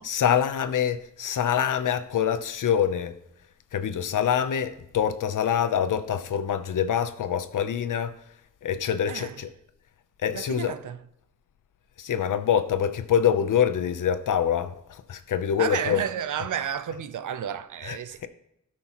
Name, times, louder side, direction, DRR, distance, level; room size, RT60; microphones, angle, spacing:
voice 1, 0.0-3.1 3.7-8.1 8.6-9.5 10.2-10.7 12.0-16.0 17.8-18.3, left 8 dB, 85° left, 0.8 m, -25 dB
voice 2, 10.4-11.0 15.6-18.3, right 8 dB, 80° right, 0.6 m, -31 dB
17.0 x 6.1 x 3.0 m
wide cardioid pair, 120°, 30 cm